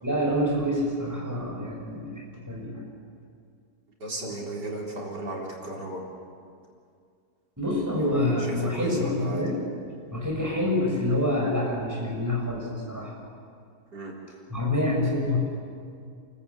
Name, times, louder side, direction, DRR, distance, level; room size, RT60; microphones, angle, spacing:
voice 1, 0.0-2.9 7.6-9.5 10.1-13.1 14.5-15.4, left 1 dB, 10° right, -2 dB, 6.1 m, -27 dB
voice 2, 4.0-6.0 8.0-9.4 13.9-14.1, right 2 dB, 85° right, -3 dB, 4.5 m, -35 dB
29.0 x 14.0 x 8.5 m, 2.3 s
omnidirectional pair, 1.8 m